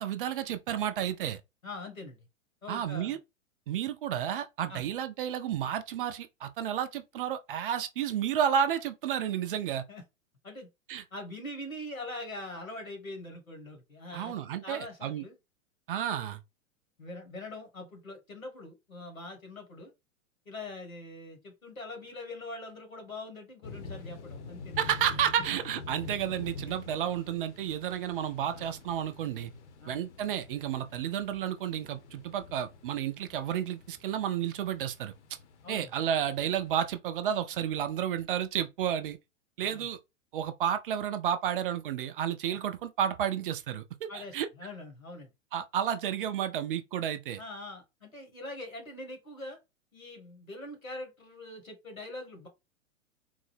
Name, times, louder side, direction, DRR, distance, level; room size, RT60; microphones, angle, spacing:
voice 1, 0.0-1.4 2.7-3.2 3.7-9.8 10.9-11.0 14.1-15.2 15.9-16.4 24.8-29.5 29.9-35.1 35.7-39.2 39.6-40.0 40.3-44.5 45.5-47.4, right 9 dB, 45° right, 0.5 m, -31 dB
voice 2, 1.6-2.3 2.6-3.2 4.7-4.8 9.9-10.0 10.4-10.7 11.1-14.3 14.6-15.4 17.0-19.9 20.4-24.9 28.5-28.7 29.8-30.0 35.6-35.9 39.6-39.9 42.5-42.6 44.1-45.3 47.4-49.6 49.9-52.5, left 2 dB, 85° left, 1.7 m, -43 dB
sound 1, 23.6-36.9, left 3 dB, 60° left, 0.9 m, -47 dB
3.8 x 2.0 x 3.2 m
figure-of-eight pair, 105°, 40 cm